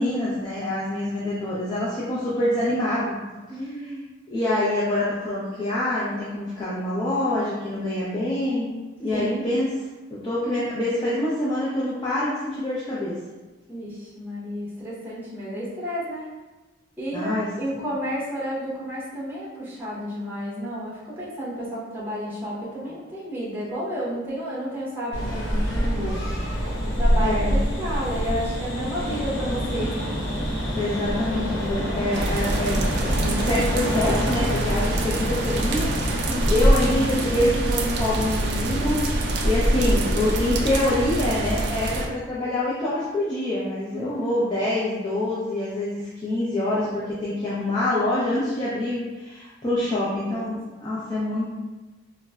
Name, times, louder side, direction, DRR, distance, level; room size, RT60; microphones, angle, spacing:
voice 1, 0.0-3.2 3.8-3.9 4.3-9.7 10.1-13.2 17.1-17.5 27.1-27.5 30.8-32.9 33.2-51.5, left 1 dB, 20° left, -8 dB, 0.4 m, -26 dB
voice 2, 3.5-4.1 9.1-9.5 13.7-16.3 17.0-26.2 26.9-30.1 36.3-36.5 43.9-44.3 49.9-50.4, equal, 10° right, -8 dB, 0.7 m, -31 dB
sound 1, 25.1-40.8, equal, 65° left, 0.9 m, -26 dB
sound 2, 32.1-42.1, right 2 dB, 55° right, 0.3 m, -27 dB
3.7 x 2.0 x 2.2 m, 1.2 s
head